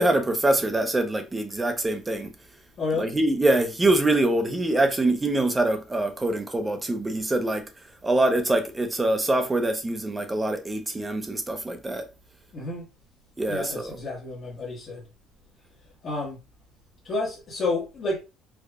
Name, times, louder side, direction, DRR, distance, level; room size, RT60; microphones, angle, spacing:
voice 1, 0.0-2.3 3.0-7.7 8.0-12.1 13.4-14.0, right 2 dB, 10° right, 0.5 m, -24 dB
voice 2, 2.8-3.1 12.5-12.9 13.5-15.1 16.0-16.4 17.0-18.2, left 3 dB, 35° left, 1.1 m, -30 dB
4.7 x 2.3 x 2.3 m
cardioid pair, 155°, 0 cm